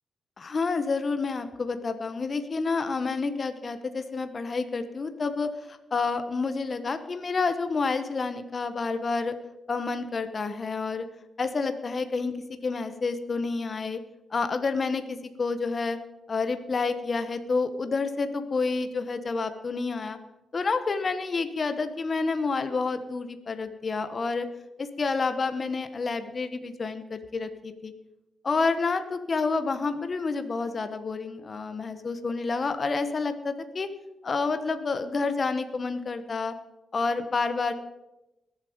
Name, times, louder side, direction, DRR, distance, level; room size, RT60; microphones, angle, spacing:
voice 1, 0.4-9.3 9.7-11.0 11.4-12.4 12.6-14.0 14.3-16.0 16.3-20.2 20.5-24.5 24.8-27.9 28.4-33.9 34.2-36.5 36.9-37.7, left 4 dB, 45° left, 10 dB, 1.0 m, -29 dB
21.0 x 7.5 x 5.1 m, 0.97 s
cardioid pair, 70°, 0 cm